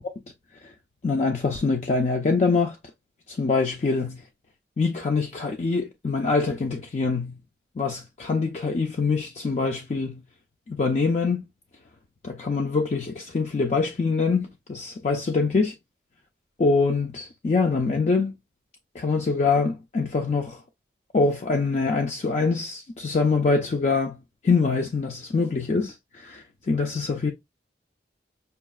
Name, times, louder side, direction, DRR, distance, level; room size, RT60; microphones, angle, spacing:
voice 1, 1.0-2.8 3.3-4.2 4.8-7.4 7.8-10.2 10.7-11.4 12.2-15.7 16.6-18.3 19.0-20.6 21.1-24.2 24.4-27.3, left 4 dB, 40° left, 0.4 m, -24 dB
5.5 x 2.3 x 2.2 m
head